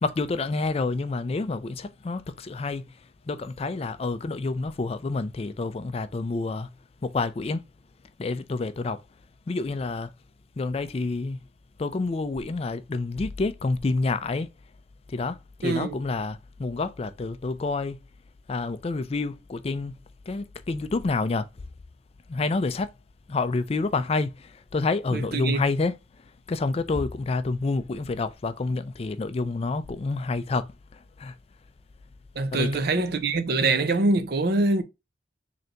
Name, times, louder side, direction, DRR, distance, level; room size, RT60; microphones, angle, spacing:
voice 1, 0.0-2.9 3.3-6.7 7.0-7.6 8.2-9.0 9.5-10.1 10.6-11.4 11.8-14.5 15.1-18.0 18.5-20.0 20.3-21.5 22.3-22.9 23.3-25.9 26.5-30.7 31.2-31.3 32.5-32.7, left 3 dB, 35° left, 0.4 m, -28 dB
voice 2, 15.6-16.0 25.1-25.6 32.4-34.8, right 3 dB, 60° right, 0.6 m, -24 dB
3.9 x 3.3 x 2.8 m
head